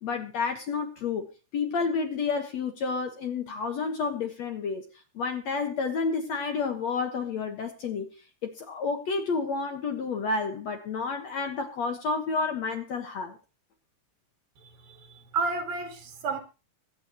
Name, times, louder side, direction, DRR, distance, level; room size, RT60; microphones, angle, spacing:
voice 1, 0.0-4.9 5.2-8.1 8.4-13.4, left 4 dB, 55° left, 2.1 m, -30 dB
voice 2, 14.6-16.4, right 4 dB, 65° right, 3.8 m, -32 dB
23.0 x 8.8 x 3.0 m
omnidirectional pair, 4.6 m